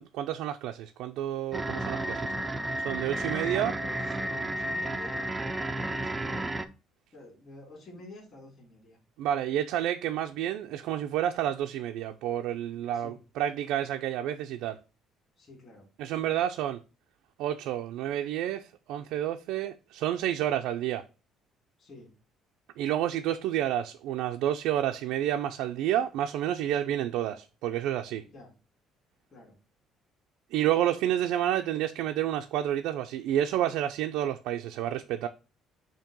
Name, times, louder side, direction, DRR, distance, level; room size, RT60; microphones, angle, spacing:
voice 1, 0.0-2.3 2.8-3.7 9.2-14.8 16.0-16.8 17.4-21.0 22.8-28.2 30.5-35.3, right 11 dB, 85° right, 0.5 m, -29 dB
sound 1, 1.5-6.6, right 1 dB, 10° right, 0.5 m, -32 dB
voice 2, 2.9-6.6 7.1-9.0 12.9-13.2 15.4-15.9 21.8-22.1 26.7-27.0 28.3-28.5 29.3-29.5, left 2 dB, 30° left, 3.8 m, -49 dB
7.4 x 2.9 x 5.2 m
cardioid pair, 165°, 0 cm